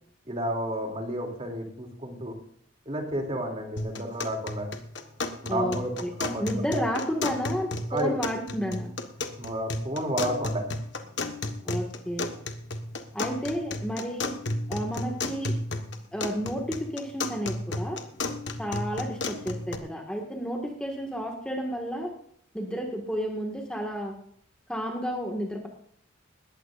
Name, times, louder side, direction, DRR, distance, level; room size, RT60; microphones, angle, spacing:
voice 1, 0.3-2.4 2.8-4.7 5.4-5.9 6.2-6.4 7.9-8.1 9.4-10.6, right 1 dB, 30° right, 2 dB, 3.0 m, -31 dB
sound 1, 3.8-19.8, left 2 dB, 55° left, 1.4 m, -34 dB
voice 2, 6.4-8.9 11.6-12.4 13.1-14.3 14.7-15.5 16.1-18.0 18.6-22.1 22.5-24.1 24.7-25.7, equal, 5° left, 0 dB, 1.8 m, -31 dB
20.0 x 15.5 x 2.6 m, 0.63 s
head